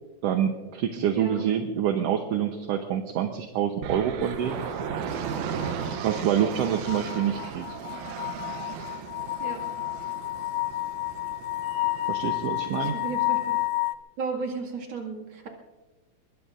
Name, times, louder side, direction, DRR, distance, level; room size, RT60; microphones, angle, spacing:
voice 1, 0.2-4.6 6.0-7.7 12.1-12.9, right 9 dB, 65° right, 5 dB, 1.8 m, -26 dB
voice 2, 1.1-1.4 9.4-9.6 12.7-13.6 14.2-15.5, right 4 dB, 40° right, 0 dB, 2.7 m, -34 dB
sound 1, 3.8-13.7, right 7 dB, 80° right, 2.3 m, -36 dB
sound 2, 4.3-13.9, left 18 dB, 75° left, 1.5 m, -31 dB
24.0 x 22.0 x 2.6 m, 1.2 s
omnidirectional pair, 3.4 m